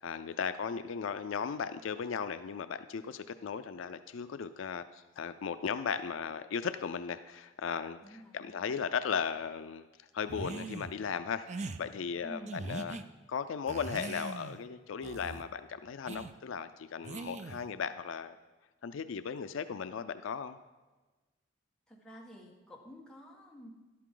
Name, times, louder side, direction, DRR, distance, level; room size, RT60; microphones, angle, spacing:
voice 1, 0.0-9.9 10.1-13.0 13.3-18.4 18.8-20.6, left 6 dB, 70° left, 11 dB, 0.4 m, -36 dB
voice 2, 8.0-8.7 12.2-12.6 21.9-23.7, equal, 5° left, -3 dB, 1.7 m, -50 dB
sound 1, 10.3-10.9 11.5-11.8 12.5-13.0 13.7-14.6 15.0-15.5 16.1-16.3 17.0-17.7, right 3 dB, 35° right, 0.5 m, -41 dB
13.0 x 11.5 x 3.8 m, 1.2 s
head